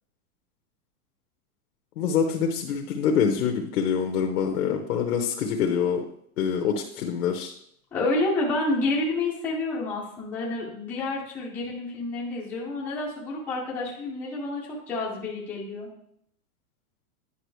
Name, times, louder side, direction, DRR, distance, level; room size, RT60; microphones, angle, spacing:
voice 1, 2.0-6.0 6.4-7.5, left 7 dB, 90° left, 2 dB, 1.2 m, -25 dB
voice 2, 7.9-15.9, left 2 dB, 5° left, -6 dB, 0.6 m, -29 dB
9.9 x 5.4 x 3.2 m, 0.69 s
supercardioid pair, 170°, 44 cm